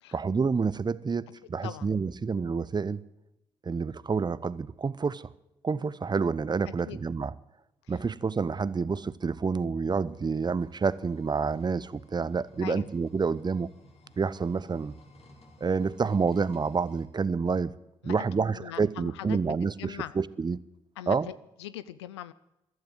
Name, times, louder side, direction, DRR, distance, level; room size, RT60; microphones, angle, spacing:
voice 1, 0.1-3.0 3.6-5.3 5.6-7.3 7.9-13.7 14.2-15.0 15.6-17.7 18.0-20.6 21.1-21.3, right 5 dB, 30° right, 0.8 m, -28 dB
sound 1, 10.1-17.1, left 1 dB, 50° left, 3.8 m, -56 dB
voice 2, 18.5-20.2 21.0-22.3, left 13 dB, 90° left, 0.5 m, -41 dB
15.0 x 12.5 x 7.8 m
hypercardioid pair, 40°, 14 cm